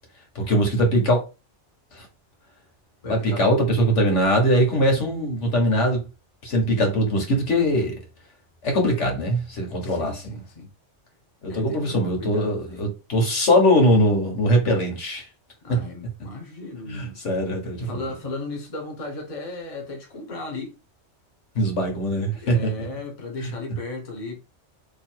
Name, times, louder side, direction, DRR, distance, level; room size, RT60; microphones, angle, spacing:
voice 1, 0.3-1.2 1.9-2.0 3.0-6.0 6.4-7.9 8.6-10.1 11.4-15.2 15.7-15.8 16.9-18.1 21.5-22.7 23.4-23.5, equal, 75° left, 1.6 m, -21 dB
voice 2, 3.0-3.5 9.8-10.7 11.5-12.9 15.6-17.2 17.8-20.7 22.1-24.4, left 2 dB, 30° left, 1.0 m, -35 dB
3.1 x 2.7 x 4.4 m
omnidirectional pair, 1.2 m